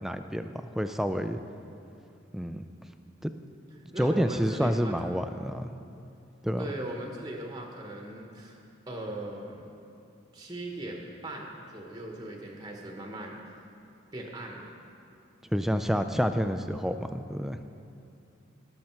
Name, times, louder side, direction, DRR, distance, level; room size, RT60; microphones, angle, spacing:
voice 1, 0.0-1.4 2.3-2.6 3.2-3.3 4.0-5.7 6.4-6.7 15.5-17.6, equal, ahead, 8 dB, 0.3 m, -28 dB
voice 2, 3.8-4.9 6.6-8.6 8.9-9.7 10.3-13.4 14.1-14.7, right 1 dB, 20° right, 0 dB, 0.9 m, -39 dB
17.5 x 6.5 x 4.4 m, 2.6 s
head